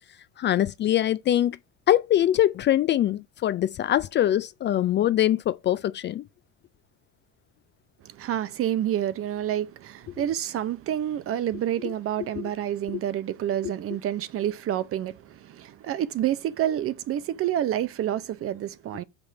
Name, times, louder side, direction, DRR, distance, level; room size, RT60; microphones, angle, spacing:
voice 1, 0.4-1.6 1.9-6.2 11.8-11.9 12.4-12.5 12.9-13.0, left 12 dB, 35° left, 0.4 m, -23 dB
voice 2, 8.0-19.0, right 11 dB, 40° right, 0.7 m, -28 dB
5.6 x 5.3 x 4.5 m
cardioid pair, 120°, 33 cm